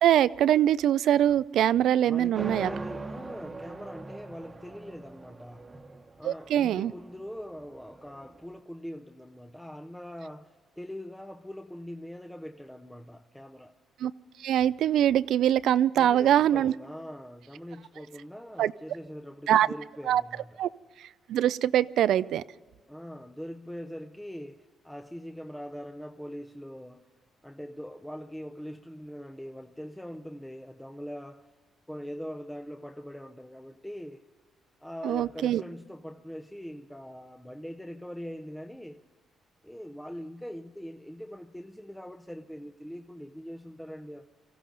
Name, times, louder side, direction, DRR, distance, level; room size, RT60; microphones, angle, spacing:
voice 1, 0.0-2.7 6.2-6.9 14.0-14.1 14.4-16.7 18.6-18.7 19.5-19.7 20.1-20.2 20.6-20.7 21.3-22.4 35.0-35.6, right 11 dB, 75° right, 0.4 m, -23 dB
voice 2, 2.0-5.8 6.2-13.7 16.0-20.6 22.9-27.1 27.4-31.5 31.9-34.3 34.8-39.0 39.6-44.3, equal, 5° left, 0.7 m, -42 dB
sound 1, 2.3-8.4, right 3 dB, 25° right, 1.1 m, -41 dB
24.5 x 15.0 x 3.9 m
cardioid pair, 90°, 0 cm